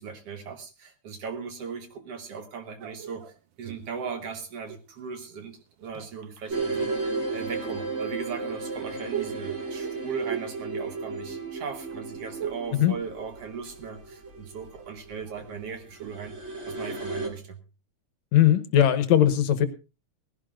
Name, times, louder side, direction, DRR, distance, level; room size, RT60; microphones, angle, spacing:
voice 1, 0.0-7.0 7.3-16.4 16.7-17.6, right 5 dB, 60° right, 6 dB, 2.3 m, -38 dB
sound 1, 2.8-5.0 5.7-6.5 7.6-11.6 11.9-12.8 13.0-13.9 14.3-17.5, right 10 dB, 90° right, 1.0 m, -41 dB
sound 2, 6.5-17.3, right 3 dB, 25° right, 2.3 m, -34 dB
voice 2, 18.3-19.7, left 11 dB, 70° left, 11 dB, 2.1 m, -19 dB
18.5 x 16.0 x 2.5 m, 0.30 s
omnidirectional pair, 3.3 m